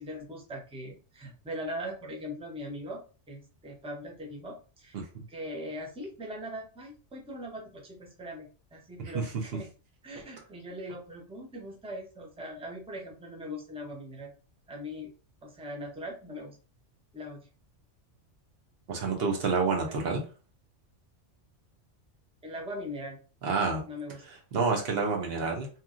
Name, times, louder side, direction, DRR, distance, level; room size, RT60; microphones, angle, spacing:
voice 1, 0.0-3.0 3.3-5.0 5.3-9.7 10.0-14.3 14.7-15.1 15.4-16.5 17.1-17.4 20.0-20.2 22.4-23.2 23.9-24.2, equal, 10° right, 0 dB, 0.4 m, -40 dB
voice 2, 9.0-9.3 18.9-20.2 23.4-23.8 24.3-25.7, right 4 dB, 60° right, 1 dB, 0.9 m, -29 dB
2.8 x 2.6 x 2.4 m, 0.36 s
omnidirectional pair, 1.2 m